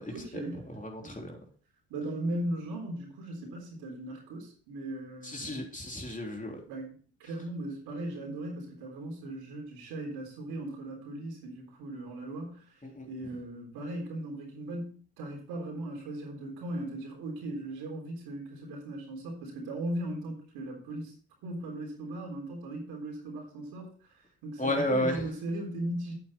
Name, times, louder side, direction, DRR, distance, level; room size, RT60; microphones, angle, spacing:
voice 1, 0.1-0.6 1.0-1.1 1.9-5.6 6.7-6.9 7.2-21.1 21.4-23.9 24.1-26.1, right 1 dB, 80° right, 0 dB, 3.9 m, -38 dB
voice 2, 0.8-1.3 5.2-6.6 12.8-13.1 24.6-25.2, left 1 dB, 20° left, 1 dB, 3.4 m, -32 dB
8.5 x 8.5 x 4.3 m, 0.44 s
hypercardioid pair, 55°, 37 cm